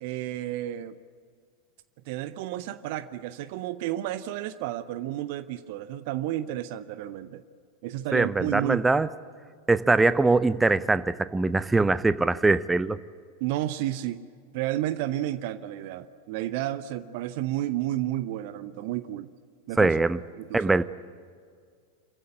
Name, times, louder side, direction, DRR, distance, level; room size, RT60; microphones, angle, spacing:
voice 1, 0.0-1.0 2.1-7.4 7.8-8.8 13.4-14.2 14.5-19.3 19.7-19.9 20.4-20.8, right 13 dB, 50° right, 14 dB, 0.8 m, -31 dB
voice 2, 8.1-9.1 9.7-13.0 19.8-20.2 20.5-20.8, right 3 dB, 10° right, 16 dB, 0.6 m, -22 dB
26.5 x 15.5 x 9.6 m, 2.1 s
figure-of-eight pair, 90°, 0 cm